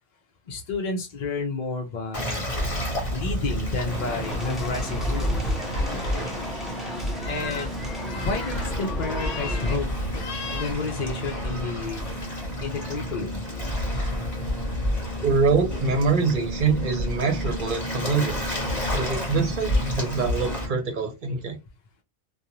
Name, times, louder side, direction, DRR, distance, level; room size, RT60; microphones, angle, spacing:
voice 1, 0.5-2.6 3.1-5.6 7.3-7.7 8.2-9.9 10.5-12.1 12.6-13.4, left 4 dB, 50° left, 1 dB, 0.6 m, -31 dB
Waves surf, 2.1-20.7, equal, 35° left, 1.1 m, -29 dB
sound 1, 3.9-9.8, equal, ahead, 0.5 m, -36 dB
sound 2, 7.1-7.7 8.0-8.7 9.1-9.8 10.1-10.7 11.1-11.5 12.5-12.9, left 5 dB, 85° left, 0.9 m, -38 dB
voice 2, 15.2-18.4 18.9-21.6, right 5 dB, 55° right, 5 dB, 0.9 m, -24 dB
2.5 x 2.3 x 2.9 m, 0.23 s
omnidirectional pair, 1.0 m